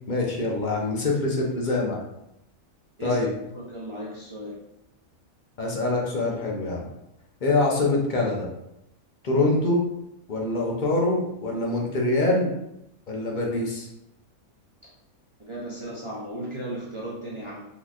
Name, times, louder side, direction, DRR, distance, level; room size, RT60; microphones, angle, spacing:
voice 1, 0.1-2.0 3.0-3.3 5.6-6.9 7.4-8.5 9.2-9.8 10.3-12.5 13.1-13.9, left 2 dB, 45° left, -2 dB, 0.6 m, -24 dB
voice 2, 3.5-4.6 14.8-14.9 15.4-17.7, right 1 dB, 45° right, -7 dB, 0.4 m, -36 dB
3.7 x 2.9 x 2.4 m, 0.83 s
omnidirectional pair, 1.4 m